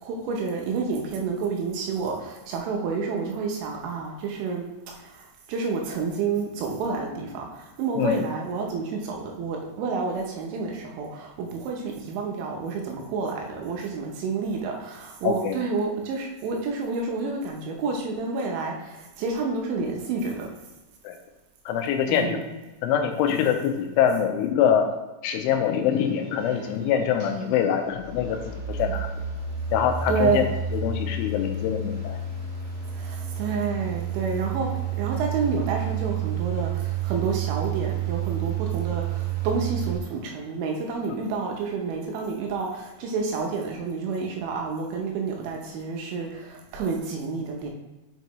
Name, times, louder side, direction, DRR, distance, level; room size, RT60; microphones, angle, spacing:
voice 1, 0.0-20.5 22.1-22.5 30.1-30.5 32.9-34.7 35.0-47.7, right 4 dB, 75° right, 1 dB, 3.0 m, -29 dB
voice 2, 15.2-15.6 21.0-21.2 21.7-22.4 22.8-24.9 25.2-29.1 29.7-30.4 30.7-32.2, left 8 dB, 85° left, 5 dB, 2.9 m, -24 dB
sound 1, 25.9-39.9, right 7 dB, 45° right, 2.0 m, -30 dB
8.0 x 5.3 x 3.1 m, 1.1 s
omnidirectional pair, 5.8 m